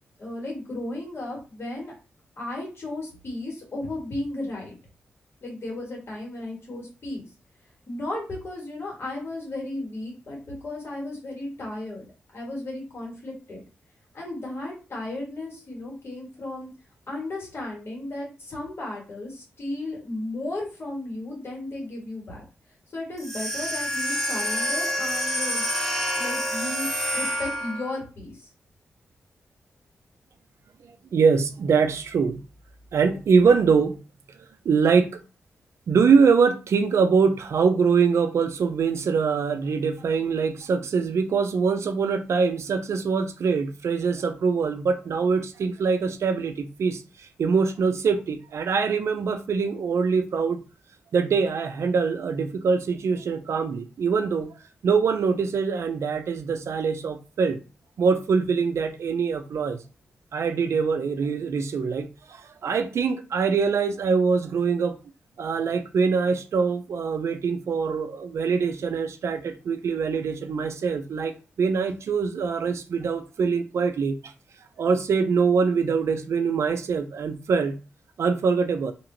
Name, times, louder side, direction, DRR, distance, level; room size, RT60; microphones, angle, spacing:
voice 1, 0.2-1.9 2.4-4.7 5.4-7.3 7.9-12.1 12.3-13.6 14.1-16.7 17.1-22.4 22.9-25.7 26.1-26.9 27.1-28.5, left 2 dB, 55° left, 1.7 m, -34 dB
sound 1, 23.2-28.0, equal, 10° left, 0.7 m, -27 dB
voice 2, 31.1-32.4 32.9-34.0 34.7-35.2 35.9-50.6 51.1-54.5 54.8-57.6 58.0-59.8 60.3-65.0 65.4-74.3 74.8-77.7 78.2-78.9, right 5 dB, 70° right, 0.4 m, -23 dB
2.9 x 2.8 x 2.7 m
supercardioid pair, 45°, 5 cm